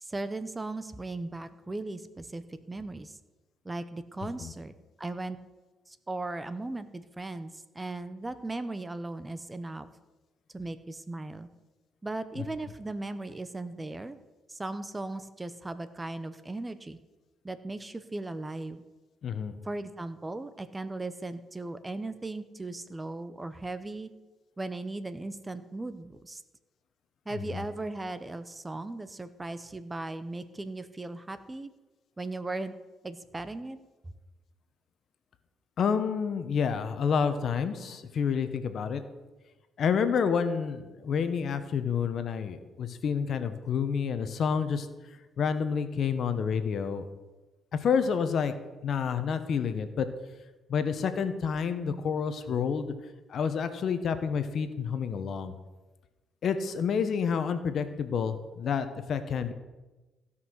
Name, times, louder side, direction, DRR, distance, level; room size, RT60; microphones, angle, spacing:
voice 1, 0.0-3.2 3.6-4.7 5.0-5.4 5.9-9.9 10.5-11.5 12.0-14.2 14.5-17.0 17.4-18.8 19.6-24.1 24.6-26.4 27.3-31.7 32.2-32.7 33.0-33.8, right 2 dB, 20° right, 13 dB, 0.8 m, -37 dB
voice 2, 4.2-4.5 12.4-12.5 19.2-19.6 27.5-27.6 35.8-39.0 39.8-44.9 45.4-47.1 47.8-48.5 48.8-50.1 50.7-52.9 53.3-55.5 56.4-59.5, left 6 dB, 60° left, 10 dB, 1.1 m, -29 dB
16.0 x 5.7 x 6.4 m, 1.2 s
cardioid pair, 90°, 0 cm